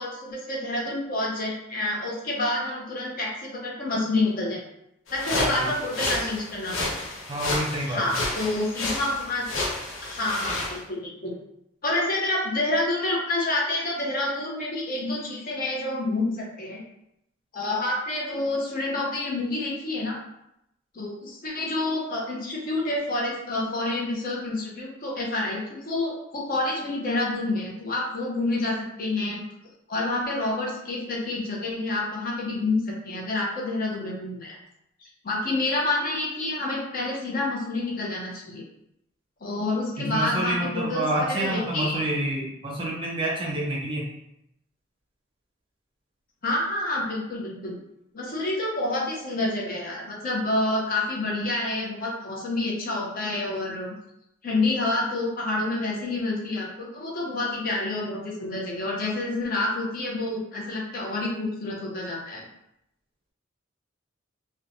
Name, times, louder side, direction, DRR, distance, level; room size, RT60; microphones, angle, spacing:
voice 1, 0.0-4.6 5.1-6.9 7.9-9.5 10.0-11.4 11.8-16.8 17.5-20.1 20.9-29.4 29.9-34.6 35.2-38.6 39.4-42.0 46.4-47.8 48.1-53.9 54.4-62.4, left 2 dB, 45° left, -3 dB, 0.6 m, -28 dB
sound 1, 5.1-10.8, left 2 dB, 85° left, 0.7 m, -31 dB
voice 2, 5.4-5.7 7.3-8.0 40.0-44.1, right 1 dB, 25° right, -3 dB, 0.5 m, -28 dB
3.0 x 2.1 x 2.6 m, 0.82 s
head